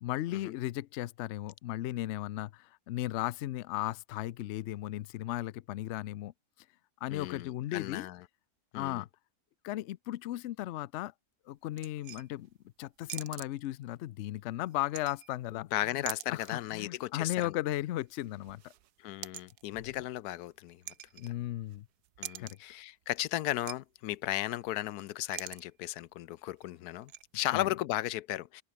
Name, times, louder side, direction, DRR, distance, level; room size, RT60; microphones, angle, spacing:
voice 1, 0.0-6.3 7.0-8.1 8.7-9.1 9.6-11.1 11.5-12.5 12.8-15.7 16.0-18.7 19.7-19.9 21.2-21.9 22.4-22.6 27.5-27.7, left 15 dB, 65° left, 0.7 m, -36 dB
voice 2, 7.1-8.2 8.7-9.0 15.5-17.6 19.0-20.8 21.1-21.2 22.2-28.6, left 14 dB, 90° left, 1.1 m, -35 dB
sound 1, 11.8-12.5 13.0-14.0 14.6-15.6 15.8-16.6 17.0-17.6 17.9-21.8 22.0-22.7 23.2-23.3 23.5-23.8 24.0-24.1 24.4-24.8 25.1-25.7 26.0-26.1 26.6-27.2, right 12 dB, 80° right, 1.4 m, -46 dB
omnidirectional pair, 1.6 m